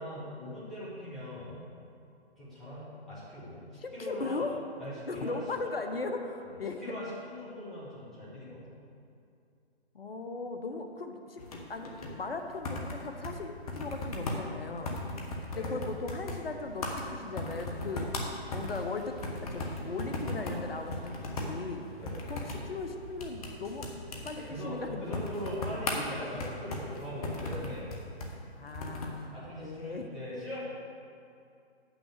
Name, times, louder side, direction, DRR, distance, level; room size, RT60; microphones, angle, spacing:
voice 1, 0.0-1.7 2.4-4.5 4.8-5.4 6.4-6.5 6.8-8.8 15.5-15.8 22.0-22.2 24.3-28.0 29.3-30.6, equal, ahead, -12 dB, 1.8 m, -41 dB
voice 2, 3.8-4.6 5.1-6.8 9.9-11.4 11.7-15.0 15.5-18.1 18.5-19.2 19.5-21.9 22.3-23.9 24.2-25.2 28.6-30.1, left 3 dB, 60° left, 5 dB, 1.0 m, -38 dB
sound 1, 11.4-29.2, left 2 dB, 35° left, 1.1 m, -38 dB
8.6 x 6.1 x 6.6 m, 2.5 s
figure-of-eight pair, 135°, 33 cm